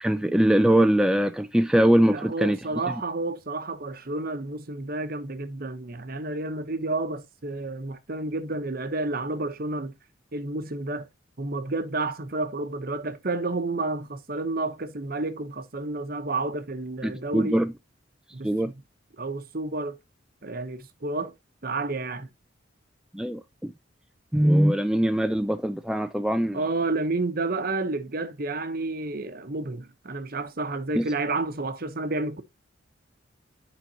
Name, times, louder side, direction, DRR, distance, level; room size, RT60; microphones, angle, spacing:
voice 1, 0.0-2.6 17.0-17.7 18.4-18.7 23.1-23.7 24.3-26.6 31.0-31.1, right 1 dB, 5° right, 0.4 m, -22 dB
voice 2, 2.0-9.9 10.3-11.1 11.4-17.6 18.3-18.7 19.2-20.0 20.4-21.3 21.6-22.3 26.5-32.4, right 2 dB, 50° right, 1.0 m, -30 dB
10.5 x 5.1 x 2.8 m
head